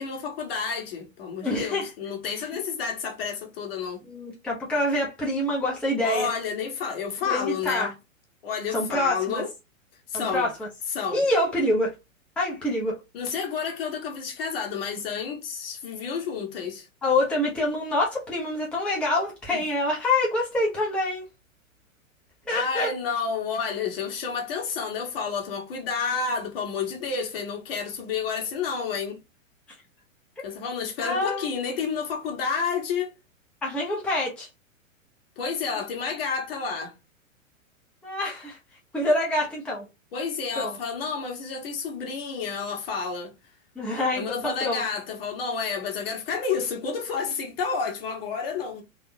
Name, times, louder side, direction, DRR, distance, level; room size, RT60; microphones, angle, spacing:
voice 1, 0.0-4.0 6.0-7.9 8.4-9.5 10.1-10.5 10.9-11.2 13.1-16.9 19.5-19.6 22.5-29.2 30.4-33.1 35.4-36.9 40.1-43.3 44.1-48.8, left 5 dB, 45° left, 1.5 m, -30 dB
voice 2, 1.4-1.9 4.0-6.3 7.2-7.9 8.7-9.4 10.1-10.5 11.1-11.9 12.4-12.9 17.0-21.2 22.5-22.9 31.0-31.5 33.6-34.5 38.0-38.6 38.9-39.8 40.6-40.8 43.8-44.8, left 1 dB, 5° left, 0.7 m, -26 dB
3.7 x 2.8 x 2.6 m
figure-of-eight pair, 105°, 40 cm